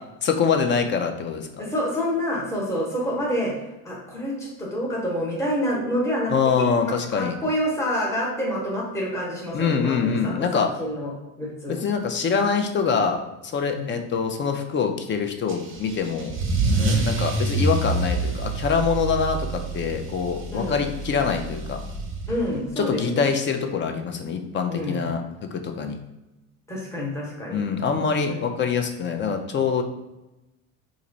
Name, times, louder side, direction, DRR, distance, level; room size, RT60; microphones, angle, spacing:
voice 1, 0.2-1.6 6.3-7.4 9.5-10.7 11.7-16.3 17.0-21.8 22.8-26.0 27.5-29.8, left 6 dB, 30° left, 5 dB, 0.4 m, -24 dB
voice 2, 1.6-3.5 3.8-6.3 6.8-10.5 10.8-11.1 11.4-11.8 13.6-13.8 16.8-17.1 20.5-20.8 22.3-23.3 24.7-25.0 26.7-27.6 28.3-28.5, equal, 5° left, -4 dB, 1.1 m, -27 dB
Car / Engine starting / Accelerating revving vroom, 15.5-22.7, right 3 dB, 30° right, 0.9 m, -27 dB
2.9 x 2.6 x 3.9 m, 0.98 s
supercardioid pair, 105°, 41 cm